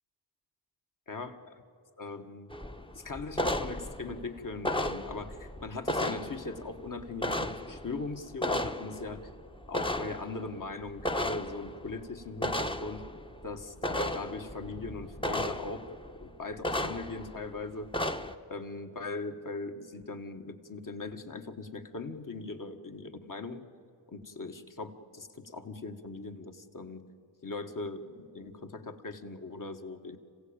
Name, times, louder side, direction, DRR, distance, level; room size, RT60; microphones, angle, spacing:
voice 1, 1.1-1.6 2.0-2.5 2.9-9.2 9.7-13.1 13.4-15.8 16.2-17.9 18.5-23.6 24.1-27.0 27.4-30.2, left 3 dB, 40° left, 5 dB, 1.9 m, -40 dB
sound 1, 2.5-16.3 16.6-17.6 17.8-18.4, left 1 dB, 10° left, 1.1 m, -35 dB
26.5 x 16.0 x 9.0 m, 2.5 s
cardioid pair, 55°, 47 cm